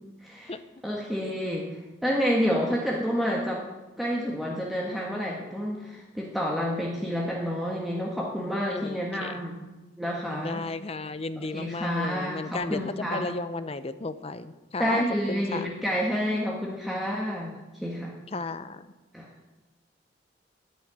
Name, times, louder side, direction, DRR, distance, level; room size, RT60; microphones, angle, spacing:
voice 1, 0.2-0.5 0.8-1.7 2.0-3.6 4.0-9.5 10.0-10.6 11.4-13.2 14.8-18.1 19.1-19.3, equal, ahead, -3 dB, 1.6 m, -29 dB
voice 2, 8.7-9.4 10.3-15.7 18.3-18.9, left 3 dB, 35° left, 12 dB, 0.7 m, -34 dB
11.0 x 10.0 x 9.1 m, 1.1 s
head